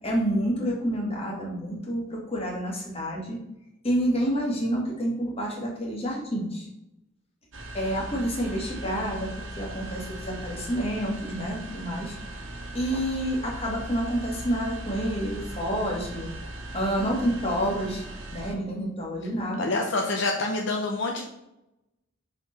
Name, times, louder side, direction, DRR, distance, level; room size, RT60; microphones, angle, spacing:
voice 1, 0.0-3.4 3.8-6.7 7.7-9.3 9.6-12.1 12.7-16.3 16.7-18.0 18.3-19.7, equal, 30° left, -2 dB, 1.7 m, -28 dB
sound 1, 7.5-18.5, right 1 dB, 70° right, 1.2 m, -39 dB
voice 2, 19.6-21.3, left 2 dB, 60° left, 1 dB, 0.7 m, -27 dB
5.9 x 4.6 x 4.2 m, 0.89 s
head